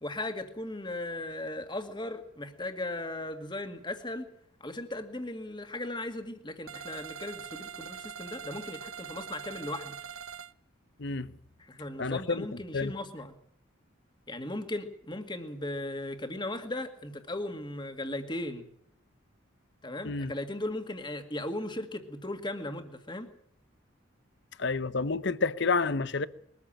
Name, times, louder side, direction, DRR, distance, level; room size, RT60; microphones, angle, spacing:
voice 1, 0.0-4.3 4.6-10.0 11.6-13.4 14.3-18.6 19.8-23.3, left 1 dB, 20° left, 2.0 m, -37 dB
sound 1, 6.7-10.5, right 8 dB, 75° right, 0.9 m, -43 dB
voice 2, 11.0-11.3 12.0-12.5 12.7-12.9 20.0-20.3 24.6-26.3, left 4 dB, 55° left, 0.9 m, -29 dB
22.0 x 14.5 x 8.9 m
head